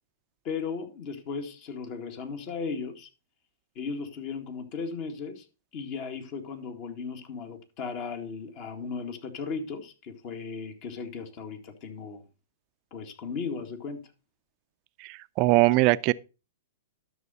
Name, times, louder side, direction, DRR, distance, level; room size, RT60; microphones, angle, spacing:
voice 1, 0.4-3.1 3.8-5.5 5.7-12.2 12.9-14.1, left 5 dB, 45° left, 1.9 m, -36 dB
voice 2, 15.0-16.1, right 20 dB, 40° right, 0.5 m, -21 dB
12.5 x 6.3 x 4.1 m
hypercardioid pair, 120°, 0 cm